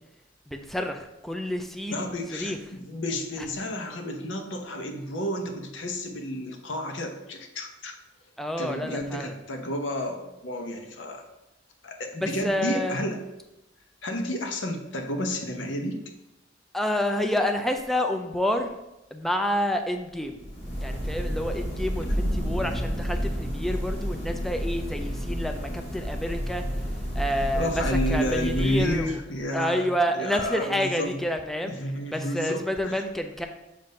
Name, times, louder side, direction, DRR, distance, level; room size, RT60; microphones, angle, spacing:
voice 1, 0.5-2.6 8.4-9.3 12.2-13.0 16.7-18.7 19.1-20.4 20.8-26.6 27.1-29.1 29.5-31.7 32.1-33.5, equal, ahead, 5 dB, 0.3 m, -29 dB
voice 2, 1.9-7.9 8.6-11.2 11.8-13.2 14.0-16.0 22.2-22.5 27.5-31.2 31.7-33.0, left 1 dB, 90° left, 4 dB, 0.9 m, -31 dB
sound 1, 20.2-29.4, equal, 35° left, 1.6 m, -30 dB
7.3 x 2.6 x 5.3 m, 0.93 s
head